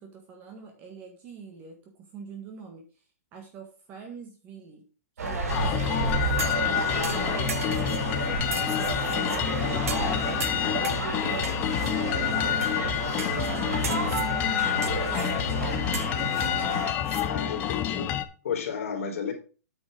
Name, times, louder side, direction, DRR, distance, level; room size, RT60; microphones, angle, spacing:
voice 1, 0.0-2.9 3.3-4.9 5.2-6.4 6.9-12.9 13.4-15.4, right 4 dB, 20° right, 1.5 m, -44 dB
sound 1, 5.2-16.9, right 3 dB, 85° right, 3.9 m, -31 dB
sound 2, 5.5-18.3, left 12 dB, 20° left, 0.6 m, -28 dB
sound 3, 6.4-6.7 7.0-8.0 8.5-9.4 9.9-10.1 10.4-11.1 11.4-11.9 12.6-12.8 13.2-13.5 13.8-14.3 14.8-15.4 15.9-17.3 17.6-17.7, right 7 dB, 65° right, 1.3 m, -38 dB
voice 2, 17.2-18.1 18.4-19.3, left 6 dB, 65° left, 3.2 m, -32 dB
8.8 x 5.3 x 4.8 m
hypercardioid pair, 160°, 8 cm